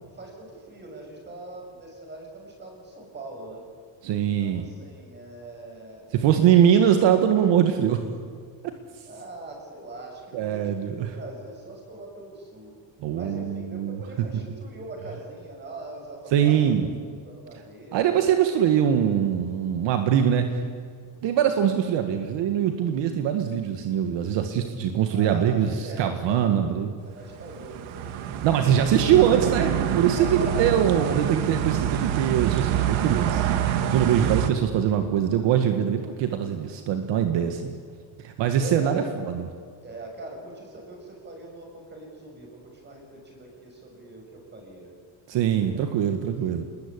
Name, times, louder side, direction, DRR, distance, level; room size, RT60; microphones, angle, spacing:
voice 1, 0.0-3.6 4.2-6.8 9.1-12.7 13.1-16.9 17.2-18.3 25.1-26.8 27.0-28.8 30.1-31.2 38.5-39.2 39.8-44.9, right 2 dB, 20° right, 1 dB, 6.7 m, -41 dB
voice 2, 4.0-4.7 6.1-8.0 8.9-9.0 10.3-11.2 13.0-14.0 16.3-16.9 17.9-20.6 21.2-26.9 28.4-33.6 33.9-37.7 38.2-39.5 45.3-46.6, right 9 dB, 65° right, 6 dB, 1.8 m, -22 dB
sound 1, 27.3-34.5, right 10 dB, 85° right, 2.0 m, -26 dB
27.5 x 21.0 x 8.6 m, 2.1 s
cardioid pair, 180°, 47 cm